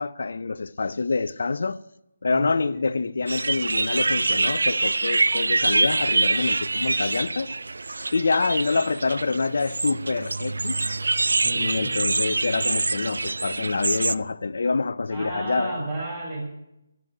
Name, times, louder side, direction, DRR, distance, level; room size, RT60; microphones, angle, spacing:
voice 1, 0.0-1.8 2.2-7.5 8.1-10.9 11.5-15.7, left 4 dB, 65° left, 0.5 m, -26 dB
voice 2, 2.3-3.1 11.4-12.0 15.1-16.5, right 2 dB, 20° right, 5.2 m, -33 dB
sound 1, 3.3-14.2, right 3 dB, 85° right, 0.4 m, -25 dB
13.5 x 8.1 x 9.5 m
hypercardioid pair, 165°, 0 cm